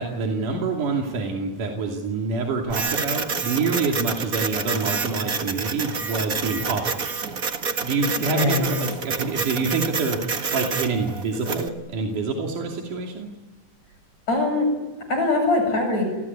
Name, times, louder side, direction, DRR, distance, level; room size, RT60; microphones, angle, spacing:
voice 1, 0.0-7.1 7.6-10.2 10.5-13.3, right 4 dB, 80° right, 1 dB, 4.3 m, -26 dB
Printer, 2.7-11.7, right 5 dB, 35° right, 1.6 m, -28 dB
voice 2, 8.2-8.7 14.3-14.7 15.1-16.0, left 2 dB, 60° left, 3 dB, 9.3 m, -22 dB
29.5 x 20.0 x 9.8 m, 1.1 s
omnidirectional pair, 3.6 m